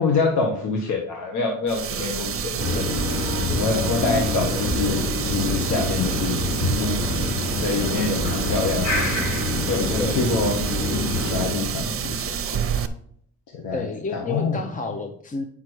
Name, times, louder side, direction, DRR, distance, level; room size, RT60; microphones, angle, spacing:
voice 1, 0.0-2.9 3.6-6.4 6.7-7.1 7.5-9.1 9.7-10.5 11.2-12.6 13.5-13.9 14.1-14.6, left 4 dB, 75° left, 0 dB, 1.5 m, -26 dB
sound 1, 1.7-12.9, right 8 dB, 45° right, 0.8 m, -29 dB
sound 2, 2.6-11.5, left 2 dB, 45° left, 3.5 m, -26 dB
voice 2, 10.0-10.3 13.7-15.4, left 4 dB, 25° left, 6 dB, 0.8 m, -30 dB
8.2 x 5.8 x 4.7 m, 0.65 s
cardioid pair, 90°, 30 cm